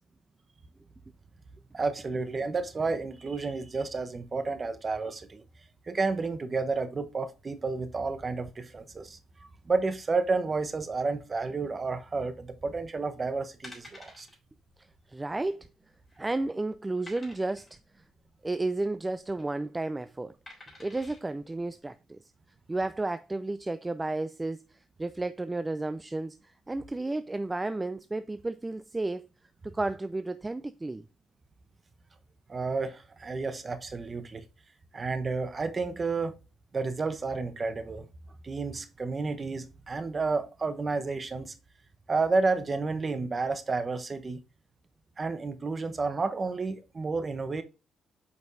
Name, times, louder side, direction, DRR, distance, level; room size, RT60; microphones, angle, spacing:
voice 1, 1.7-5.4 5.9-9.2 9.6-14.3 32.5-34.4 34.9-36.3 36.7-38.0 38.4-41.5 42.1-44.4 45.2-47.6, right 4 dB, 35° right, 0.9 m, -31 dB
sound 1, 13.6-14.4 14.7-14.9 15.1-15.2 15.8-16.3 17.1-17.7 19.1-19.4 20.5-21.2 21.8-21.9, left 1 dB, 20° left, 3.5 m, -49 dB
voice 2, 14.8-15.7 16.2-17.8 18.4-20.3 20.8-22.2 22.7-29.2 29.6-31.0, right 2 dB, 15° right, 0.4 m, -32 dB
8.1 x 5.1 x 2.6 m
cardioid pair, 90°, 0 cm